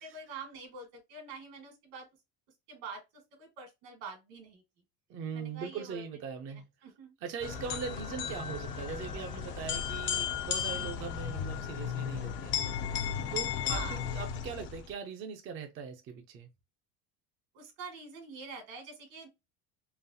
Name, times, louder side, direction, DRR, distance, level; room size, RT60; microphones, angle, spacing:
voice 1, 0.0-2.1 2.7-4.6 5.3-6.0 6.5-7.1 10.7-11.0 13.7-14.0 17.5-19.3, right 4 dB, 75° right, 2.0 m, -46 dB
voice 2, 5.1-6.7 7.2-12.5 12.9-16.5, right 6 dB, 30° right, 0.4 m, -41 dB
sound 1, 7.4-14.9, left 8 dB, 30° left, 0.4 m, -35 dB
3.9 x 3.3 x 2.7 m
cardioid pair, 165°, 42 cm